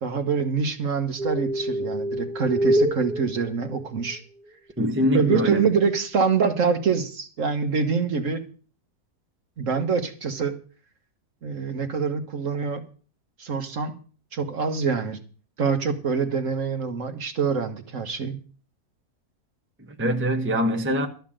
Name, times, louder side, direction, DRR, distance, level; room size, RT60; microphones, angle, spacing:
voice 1, 0.0-4.2 5.1-8.5 9.6-10.6 11.4-12.8 13.4-14.0 14.3-15.2 15.6-18.4, right 5 dB, 55° right, 1.5 m, -25 dB
sound 1, 1.2-4.1 5.0-5.5, right 1 dB, 35° right, 1.6 m, -26 dB
voice 2, 4.8-5.7 20.0-21.1, equal, 10° right, 1.0 m, -23 dB
13.0 x 5.8 x 8.8 m
omnidirectional pair, 1.6 m